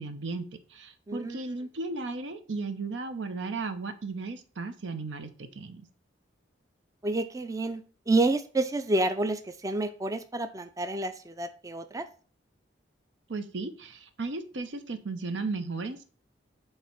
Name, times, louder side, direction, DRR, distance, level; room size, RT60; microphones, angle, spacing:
voice 1, 0.0-5.9 13.3-16.0, right 3 dB, 85° right, 9 dB, 0.8 m, -35 dB
voice 2, 1.1-1.4 7.0-12.1, right 2 dB, 20° right, 10 dB, 0.4 m, -29 dB
5.6 x 3.4 x 5.7 m, 0.39 s
head